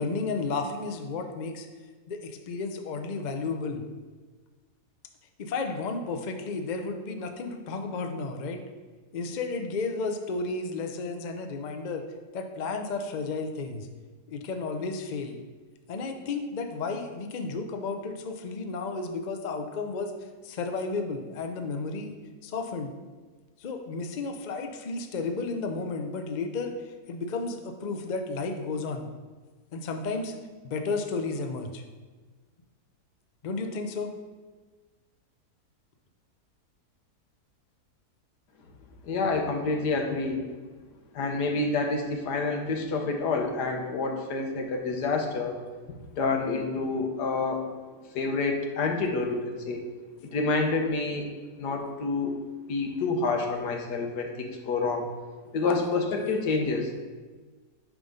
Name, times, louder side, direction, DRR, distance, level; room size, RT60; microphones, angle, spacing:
voice 1, 0.0-1.7 2.1-3.8 5.4-8.6 9.1-12.0 12.3-13.9 14.3-15.4 15.9-20.1 20.4-22.1 22.4-22.9 23.6-29.1 29.7-30.3 30.6-31.8 33.4-34.1, left 3 dB, 60° left, 4 dB, 0.4 m, -32 dB
voice 2, 39.0-40.4 41.1-45.6 46.2-47.6 48.1-49.8 50.3-51.3 51.6-52.4 52.7-55.1 55.5-57.0, left 3 dB, 80° left, 3 dB, 1.5 m, -28 dB
9.0 x 3.8 x 5.2 m, 1.3 s
omnidirectional pair, 1.7 m